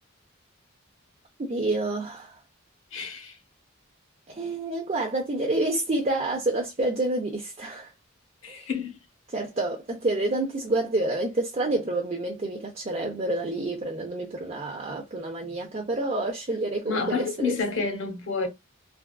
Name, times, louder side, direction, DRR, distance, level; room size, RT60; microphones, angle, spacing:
voice 1, 1.4-2.4 4.3-7.9 8.5-8.7 9.3-17.6, right 2 dB, 35° right, 0.5 m, -28 dB
voice 2, 2.9-3.4 8.4-8.9 16.8-18.5, left 5 dB, 65° left, 1.0 m, -29 dB
3.4 x 2.4 x 2.3 m
head